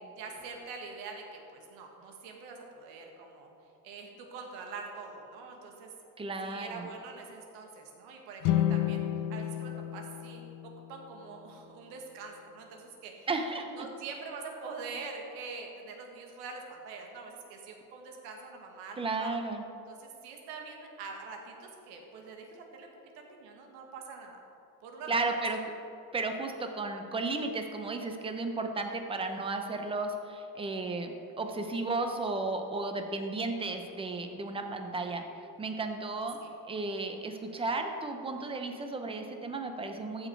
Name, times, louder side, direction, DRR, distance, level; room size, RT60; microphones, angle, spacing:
voice 1, 0.2-3.5 3.8-5.9 6.4-9.0 9.3-13.3 13.7-19.4 19.9-22.9 23.2-24.4 24.8-25.3 36.4-36.5 37.5-37.6, right 4 dB, 80° right, 2 dB, 1.8 m, -44 dB
voice 2, 6.2-6.9 13.3-13.7 19.0-19.6 25.1-25.6 26.1-35.2 35.6-36.4 36.7-40.3, right 3 dB, 15° right, 5 dB, 0.7 m, -34 dB
sound 1, 8.4-11.7, left 11 dB, 70° left, 0.7 m, -32 dB
14.5 x 6.2 x 4.6 m, 2.7 s
cardioid pair, 160°, 38 cm